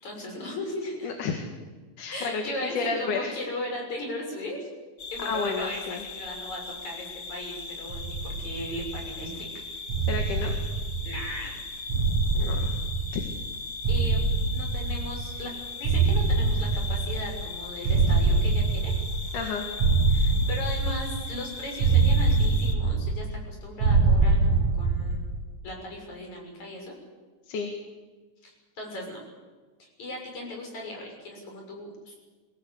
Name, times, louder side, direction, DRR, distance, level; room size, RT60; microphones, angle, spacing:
voice 1, 0.0-1.1 2.1-4.7 5.1-9.5 11.0-11.6 13.9-14.2 14.5-18.9 20.1-25.2 25.6-26.9 28.4-29.2 29.8-32.2, left 1 dB, 65° left, 1 dB, 7.7 m, -37 dB
voice 2, 1.0-1.5 2.0-3.3 5.3-6.0 10.1-10.5 12.3-12.8 13.1-13.2 19.3-19.7 27.5-27.7, left 4 dB, 85° left, 4 dB, 3.5 m, -31 dB
sound 1, 5.0-22.7, left 4 dB, 40° left, 1.9 m, -39 dB
sound 2, 7.9-9.3 9.9-11.4 11.9-13.5 13.8-15.4 15.8-17.5 17.8-19.5 19.8-21.4 21.8-23.5 23.8-25.4, right 4 dB, 70° right, 3.3 m, -24 dB
25.5 x 17.5 x 8.5 m, 1.3 s
omnidirectional pair, 3.5 m